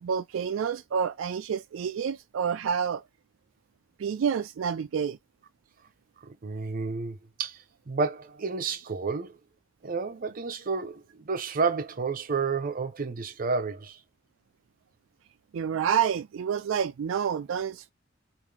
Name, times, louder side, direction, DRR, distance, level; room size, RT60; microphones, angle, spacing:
voice 1, 0.0-3.0 4.0-5.2 15.5-17.9, right 7 dB, 85° right, 0.4 m, -28 dB
voice 2, 6.2-7.6 7.9-9.4 9.8-14.0, right 4 dB, 45° right, 0.6 m, -30 dB
3.6 x 2.6 x 3.2 m
head